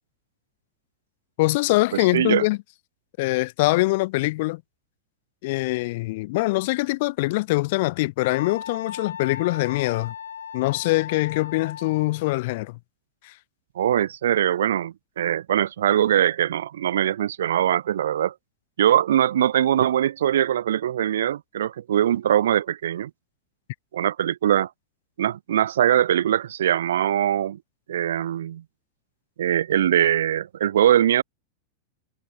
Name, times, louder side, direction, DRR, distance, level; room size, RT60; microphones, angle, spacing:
voice 1, 1.4-2.6 3.2-4.6 5.4-10.1 10.5-12.8 13.2-13.3, left 21 dB, 50° left, 0.4 m, -23 dB
voice 2, 1.9-2.5 13.8-18.3 18.8-23.1 23.9-24.7 25.2-27.6 27.9-28.6 29.4-31.2, right 11 dB, 60° right, 0.3 m, -22 dB
Wind instrument woodwind instrument, 8.2-12.3, left 8 dB, 65° left, 0.9 m, -37 dB
figure-of-eight pair, 90°, 0 cm